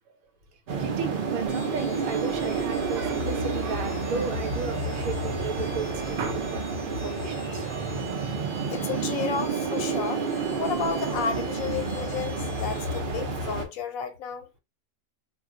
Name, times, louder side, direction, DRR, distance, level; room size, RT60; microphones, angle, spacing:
sound 1, 0.7-13.7, right 4 dB, 50° right, 0.7 m, -29 dB
voice 1, 0.8-8.4 11.7-11.8, right 5 dB, 85° right, 1.2 m, -35 dB
sound 2, 1.5-13.0, right 1 dB, 15° right, 1.2 m, -47 dB
voice 2, 8.7-10.3 10.6-14.5, left 6 dB, 85° left, 1.0 m, -32 dB
2.4 x 2.3 x 3.6 m
omnidirectional pair, 1.4 m